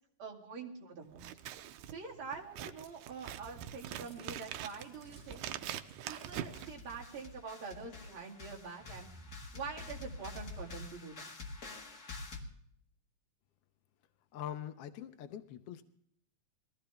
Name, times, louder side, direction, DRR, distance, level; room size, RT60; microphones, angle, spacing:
voice 1, 0.2-1.3 1.9-5.5 6.0-9.1 9.5-11.3, right 5 dB, 45° right, -3 dB, 3.0 m, -45 dB
Scissors, 1.1-7.4, right 11 dB, 90° right, 2.2 m, -44 dB
sound 1, 3.9-6.4 6.8-7.7 8.1-8.4 8.8-10.4, right 1 dB, 10° right, 5.8 m, -60 dB
sound 2, 4.2-4.3 4.7-5.8 6.1-12.4, left 3 dB, 35° left, 2.1 m, -48 dB
voice 2, 14.3-15.8, left 10 dB, 75° left, 8 dB, 1.4 m, -43 dB
20.5 x 15.5 x 3.4 m, 0.66 s
omnidirectional pair, 3.4 m